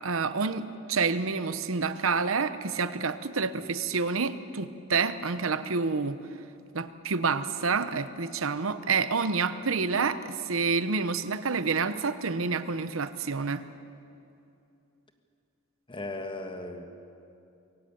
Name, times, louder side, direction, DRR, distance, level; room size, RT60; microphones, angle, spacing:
voice 1, 0.0-6.2 6.7-13.7, right 4 dB, 80° right, 12 dB, 0.9 m, -28 dB
voice 2, 15.9-16.8, left 2 dB, 25° left, 6 dB, 1.6 m, -36 dB
22.5 x 16.0 x 8.8 m, 2.6 s
head